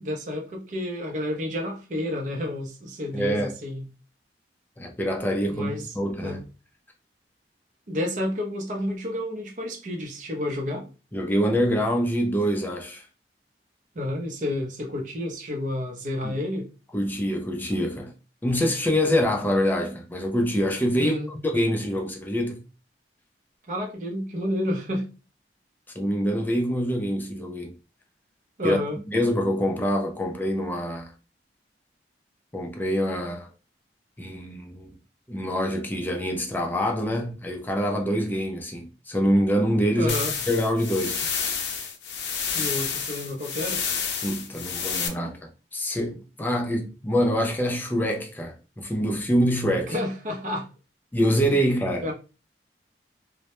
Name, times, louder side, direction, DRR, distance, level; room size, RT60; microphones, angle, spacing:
voice 1, 0.0-3.8 5.5-5.9 6.2-6.4 7.9-10.9 13.9-16.7 21.0-21.3 23.7-25.1 28.6-29.0 40.0-40.3 42.5-43.8 49.9-50.7 52.0-52.1, left 1 dB, 45° right, 0.6 m, -30 dB
voice 2, 3.1-3.5 4.8-6.5 11.1-13.1 16.2-16.4 16.9-18.1 18.4-22.6 26.0-27.7 28.6-28.8 29.1-31.1 32.5-33.5 34.2-34.9 35.3-40.2 40.5-41.2 44.2-50.0 51.1-52.1, equal, 10° left, 0.3 m, -25 dB
sound 1, 40.1-45.1, left 6 dB, 75° left, 0.4 m, -29 dB
2.1 x 2.1 x 2.9 m
head